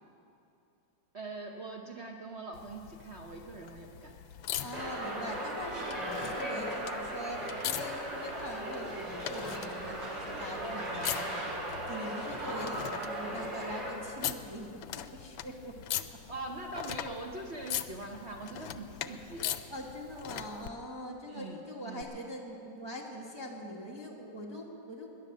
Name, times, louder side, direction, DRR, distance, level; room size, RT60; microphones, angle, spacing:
voice 1, 1.1-4.2 4.6-4.7 13.2-13.4 16.0-19.6 21.3-21.6 21.8-22.1, right 2 dB, 45° right, 1 dB, 1.0 m, -43 dB
sound 1, 2.5-20.7 22.0-22.1, left 11 dB, 90° left, 1.3 m, -41 dB
voice 2, 4.6-11.6 11.9-15.8 19.0-19.2 19.7-25.1, equal, 15° right, -2 dB, 1.1 m, -43 dB
sound 2, 4.7-13.9, right 1 dB, 75° right, 3.4 m, -37 dB
18.0 x 10.5 x 6.5 m, 2.7 s
omnidirectional pair, 2.0 m